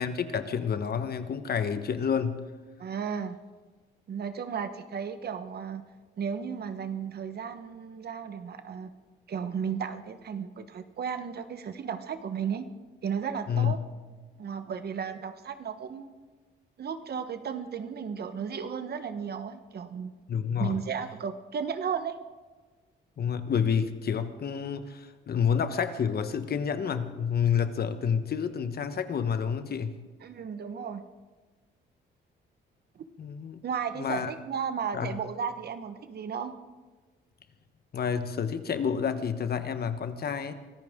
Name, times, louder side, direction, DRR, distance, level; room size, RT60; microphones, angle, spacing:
voice 1, 0.0-2.4 13.5-13.7 20.3-20.8 23.2-30.0 33.2-33.6 34.0-34.3 34.9-35.1 37.9-40.5, left 7 dB, 50° left, 10 dB, 1.2 m, -29 dB
voice 2, 2.8-3.4 4.1-5.9 6.2-8.9 9.3-12.6 13.0-13.8 14.4-16.1 16.8-20.1 20.6-22.2 30.2-31.0 32.9-33.0 33.6-36.5, right 7 dB, 55° right, 10 dB, 1.2 m, -34 dB
24.0 x 14.0 x 3.8 m, 1.3 s
cardioid pair, 90°, 20 cm